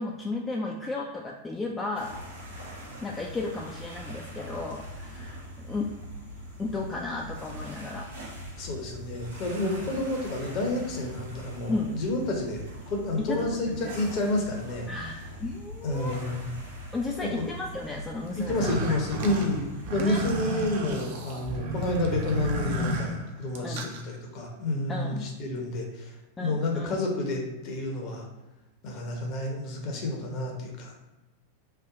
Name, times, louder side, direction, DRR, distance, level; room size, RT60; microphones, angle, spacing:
voice 1, 0.0-2.1 3.0-5.9 6.6-8.1 9.6-9.8 11.7-11.9 13.3-13.9 14.9-15.1 15.4-16.2 16.9-18.8 20.0-20.2 23.6-23.9 24.9-25.2 26.4-27.0, left 3 dB, 15° left, 0 dB, 0.3 m, -34 dB
sound 1, 1.9-20.1, equal, 70° right, 1.1 m, -42 dB
voice 2, 8.6-14.9 15.8-16.5 17.2-17.5 18.3-26.1 26.4-28.3 28.8-30.9, left 2 dB, 40° left, 1 dB, 0.8 m, -30 dB
sound 2, 18.4-24.0, right 1 dB, 50° right, 0.5 m, -32 dB
3.4 x 2.1 x 3.6 m, 1.1 s
figure-of-eight pair, 90°, 0 cm